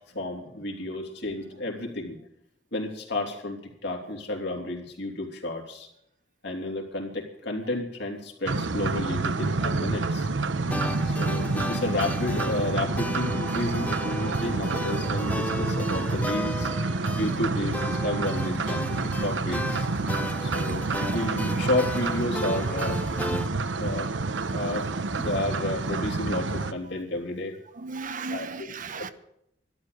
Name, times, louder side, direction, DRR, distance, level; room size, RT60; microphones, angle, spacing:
voice 1, 0.1-2.2 2.7-5.9 6.4-10.3 11.0-16.7 17.2-19.9 20.4-23.0 23.8-24.1 24.5-24.9 25.2-27.6 28.3-28.5, left 1 dB, 65° left, 3.2 m, -31 dB
sound 1, 8.5-26.7, right 3 dB, 70° right, 0.9 m, -28 dB
sound 2, 10.7-23.5, left 1 dB, 10° left, 0.6 m, -36 dB
voice 2, 10.9-11.3 15.0-15.2 16.8-17.2 20.2-20.9 23.4-25.0 26.0-26.2 27.7-29.1, right 4 dB, 45° right, 0.9 m, -41 dB
12.5 x 12.5 x 6.6 m
head